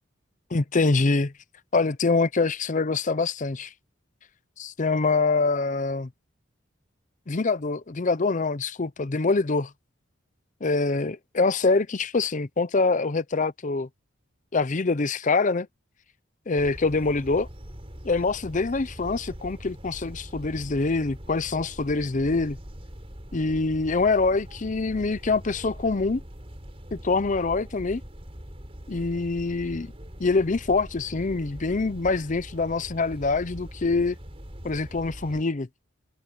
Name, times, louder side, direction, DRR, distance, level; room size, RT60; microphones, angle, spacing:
voice 1, 0.5-1.3 1.7-3.7 4.6-6.1 7.3-9.7 10.6-13.9 14.5-15.7 16.5-17.5 18.0-22.6 23.3-26.2 26.9-28.0 28.9-29.9 30.2-34.2 34.6-35.7, left 3 dB, 40° left, 0.6 m, -25 dB
sound 1, 16.6-35.4, equal, 30° right, 4.8 m, -42 dB
head